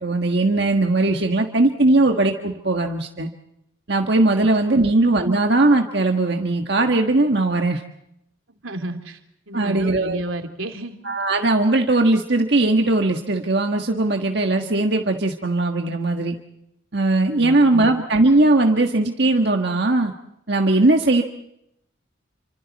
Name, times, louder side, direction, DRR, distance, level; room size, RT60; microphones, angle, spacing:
voice 1, 0.0-3.3 3.9-7.8 9.5-10.2 11.0-16.3 16.9-20.1 20.5-21.2, right 2 dB, 55° right, 3 dB, 1.6 m, -19 dB
voice 2, 8.5-9.2 9.5-11.0 17.4-17.9, right 1 dB, 85° right, 5 dB, 3.3 m, -31 dB
30.0 x 26.0 x 4.2 m, 0.78 s
head